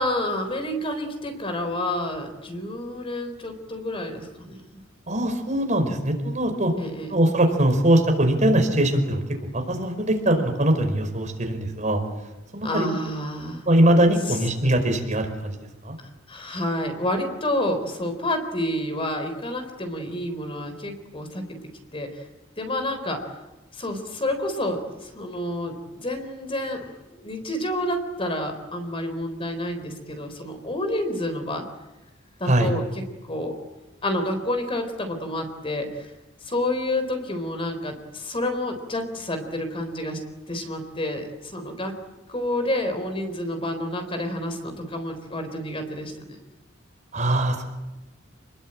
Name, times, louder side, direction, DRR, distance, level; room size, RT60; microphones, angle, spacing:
voice 1, 0.0-4.6 6.8-7.1 12.6-13.6 16.3-21.5 21.9-22.3 22.6-23.3 23.7-26.9 27.2-31.6 32.4-32.8 33.3-33.5 34.0-36.1 36.4-40.2 40.5-41.9 42.3-46.4, left 1 dB, 30° left, 7 dB, 3.9 m, -29 dB
voice 2, 5.1-6.7 7.1-9.2 9.5-12.0 12.5-12.9 13.7-15.5 15.8-15.9 32.4-32.7 47.1-47.7, right 1 dB, 40° right, 4 dB, 5.0 m, -21 dB
28.5 x 21.0 x 8.9 m, 1.0 s
head